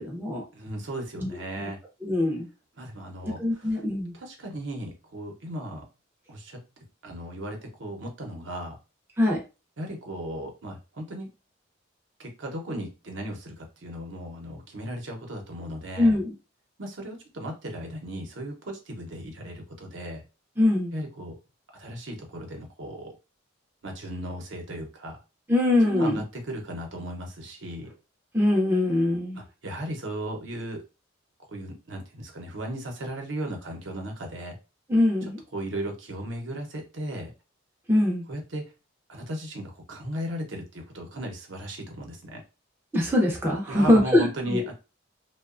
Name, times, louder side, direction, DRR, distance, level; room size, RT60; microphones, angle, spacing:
voice 1, 0.0-0.4 1.2-1.3 1.6-1.7 2.0-2.5 3.2-4.1 9.2-9.4 16.0-16.3 20.6-20.9 25.5-26.2 28.3-29.4 34.9-35.4 37.9-38.3 42.9-44.7, left 1 dB, 10° right, -2 dB, 0.5 m, -23 dB
voice 2, 0.5-1.8 2.7-3.8 4.1-5.8 6.3-6.6 7.0-8.8 9.8-11.3 12.2-16.2 16.8-20.2 20.9-21.4 21.7-23.2 23.8-25.2 25.9-27.9 29.3-30.8 31.5-34.6 35.2-37.3 38.3-38.7 39.1-42.4 43.7-44.7, right 1 dB, 65° right, 2 dB, 0.7 m, -36 dB
2.9 x 2.1 x 2.4 m, 0.30 s
head